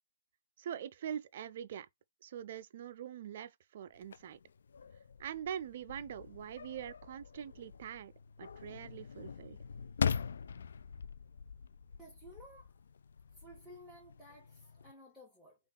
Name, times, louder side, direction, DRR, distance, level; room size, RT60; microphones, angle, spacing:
voice 1, 0.6-1.9 2.2-4.4 5.2-8.1 8.4-9.6, right 9 dB, 45° right, 0.4 m, -43 dB
sound 1, 4.0-14.9, left 6 dB, 70° left, 0.3 m, -42 dB
voice 2, 12.0-12.7 13.4-15.6, equal, ahead, 1.4 m, -55 dB
3.6 x 2.4 x 3.7 m
hypercardioid pair, 150°, 0 cm